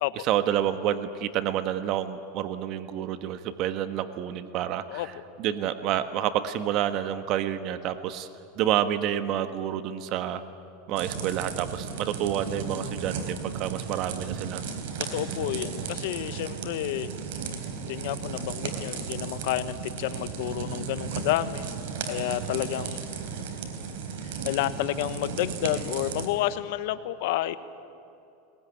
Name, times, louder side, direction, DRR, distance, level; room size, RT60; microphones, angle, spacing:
voice 1, 0.2-8.3 8.5-10.4 10.9-14.6, right 11 dB, 50° right, 10 dB, 1.4 m, -29 dB
sound 1, 11.0-26.3, right 6 dB, 75° right, 3.8 m, -35 dB
voice 2, 15.1-17.1 17.9-21.7 22.1-23.0 24.2-27.6, left 14 dB, 70° left, 12 dB, 1.3 m, -30 dB
21.5 x 21.5 x 9.9 m, 2.7 s
supercardioid pair, 135°, 0 cm